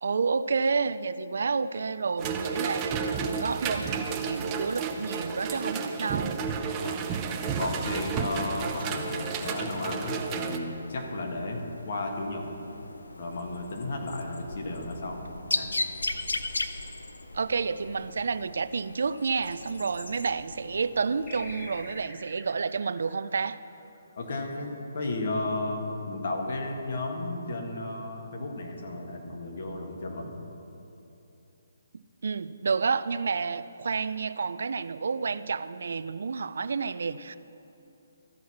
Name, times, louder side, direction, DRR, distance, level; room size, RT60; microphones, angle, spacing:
voice 1, 0.0-6.4 17.3-23.6 32.2-37.4, right 5 dB, 65° right, 15 dB, 0.3 m, -30 dB
sound 1, 2.2-10.6, right 5 dB, 25° right, 0.6 m, -32 dB
sound 2, 7.3-22.1, left 2 dB, 90° left, 0.5 m, -39 dB
voice 2, 7.6-12.4 13.2-15.2 15.5-15.7 24.2-30.3, left 2 dB, 60° left, 1 dB, 1.6 m, -33 dB
sound 3, 21.3-24.3, left 1 dB, 20° left, 1.3 m, -47 dB
14.0 x 4.7 x 5.8 m, 2.9 s
hypercardioid pair, 150°, 0 cm